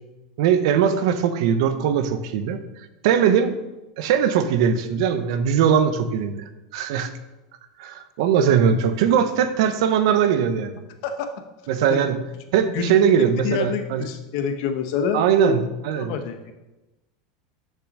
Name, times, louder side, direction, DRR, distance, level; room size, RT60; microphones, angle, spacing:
voice 1, 0.4-2.6 3.0-3.5 4.0-6.4 6.7-7.1 7.8-10.9 11.7-12.2 12.5-14.1 15.1-16.1, right 8 dB, 60° right, 11 dB, 0.8 m, -20 dB
voice 2, 13.4-15.5 16.0-16.5, left 6 dB, 50° left, 7 dB, 1.0 m, -27 dB
6.9 x 5.9 x 6.6 m, 1.0 s
supercardioid pair, 170°, 3 cm